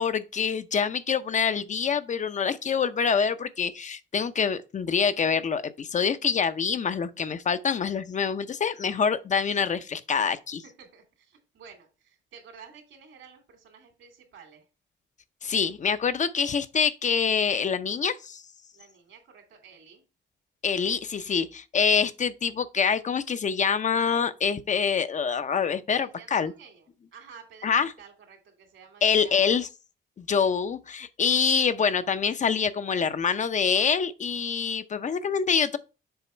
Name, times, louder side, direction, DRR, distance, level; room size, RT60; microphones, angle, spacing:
voice 1, 0.0-10.6 15.4-18.4 20.6-26.5 27.6-27.9 29.0-29.7 30.2-35.8, left 6 dB, 40° left, 0.6 m, -25 dB
voice 2, 10.6-14.7 18.7-20.0 26.0-29.5, right 6 dB, 75° right, 2.7 m, -51 dB
7.0 x 4.1 x 4.4 m
cardioid pair, 90°, 20 cm